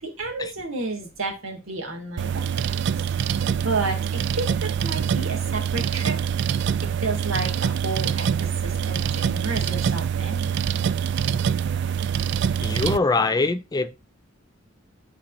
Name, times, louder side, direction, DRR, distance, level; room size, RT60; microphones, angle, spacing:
voice 1, 0.0-2.5 3.6-6.2 6.8-10.6, right 3 dB, 75° right, 2.2 m, -31 dB
sound 1, 2.2-13.0, right 7 dB, 55° right, 0.3 m, -25 dB
voice 2, 12.6-14.0, left 3 dB, 20° left, 0.4 m, -23 dB
11.5 x 4.1 x 2.5 m
head